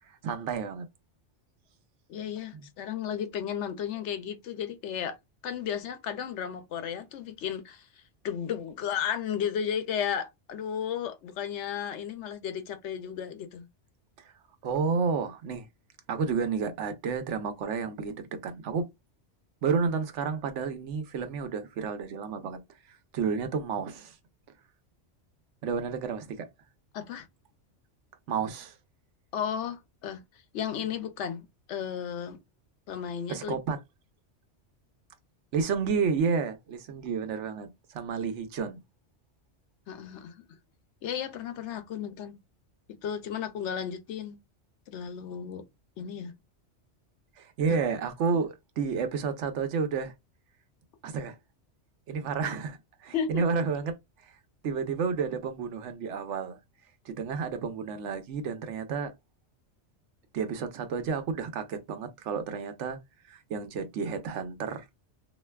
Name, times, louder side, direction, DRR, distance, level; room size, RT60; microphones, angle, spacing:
voice 1, 0.1-0.9 14.2-14.3 14.6-15.7 16.1-18.9 19.6-22.6 22.9-24.2 25.6-26.5 28.3-28.8 33.3-33.8 35.5-38.8 47.4-50.1 51.0-51.4 52.1-54.0 54.6-56.6 57.0-59.1 60.3-63.0 63.3-64.8, right 5 dB, 80° right, 1.0 m, -31 dB
voice 2, 2.1-5.2 5.4-13.7 26.9-27.3 29.3-30.2 30.5-32.4 32.9-33.5 39.9-40.4 41.0-42.4 43.0-44.4 44.9-45.6 46.0-46.3 53.1-53.4, left 8 dB, 75° left, 0.9 m, -34 dB
3.3 x 2.7 x 2.2 m
omnidirectional pair, 1.2 m